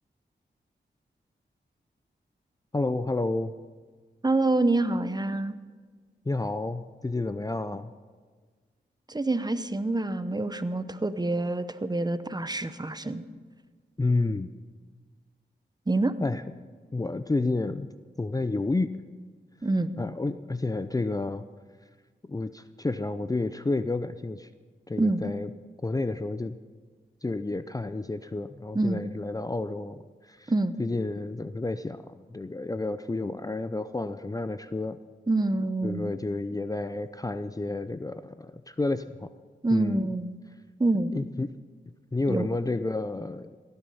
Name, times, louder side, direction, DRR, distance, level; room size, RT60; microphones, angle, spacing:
voice 1, 2.7-3.5 6.3-7.9 14.0-14.5 16.2-16.4 16.9-17.9 18.2-19.0 20.0-21.5 22.3-24.5 24.9-25.5 25.8-26.6 27.2-30.0 30.3-30.5 30.8-35.0 35.8-39.3 39.7-40.0 41.1-41.5 42.1-43.6, left 2 dB, 20° left, 12 dB, 0.5 m, -30 dB
voice 2, 4.2-5.6 9.1-13.2 15.9-16.1 19.6-19.9 25.0-25.2 28.7-29.0 30.5-30.7 35.3-36.1 39.6-40.4 40.8-41.1 42.3-42.5, right 2 dB, 20° right, 13 dB, 0.8 m, -26 dB
16.5 x 10.5 x 5.5 m, 1.5 s
cardioid pair, 50°, 19 cm